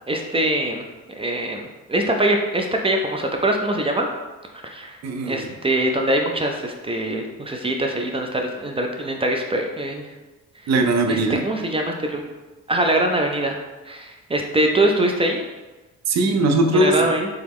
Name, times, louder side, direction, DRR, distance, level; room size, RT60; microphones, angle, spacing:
voice 1, 0.1-0.8 1.2-4.1 4.6-10.0 11.1-11.2 11.4-12.2 12.7-13.6 13.9-15.5 16.7-17.3, right 1 dB, 20° right, 2 dB, 0.5 m, -23 dB
voice 2, 5.0-5.6 10.7-11.4 16.1-17.1, right 2 dB, 60° right, 5 dB, 0.6 m, -20 dB
3.4 x 3.1 x 3.5 m, 1.2 s
cardioid pair, 90°, 30 cm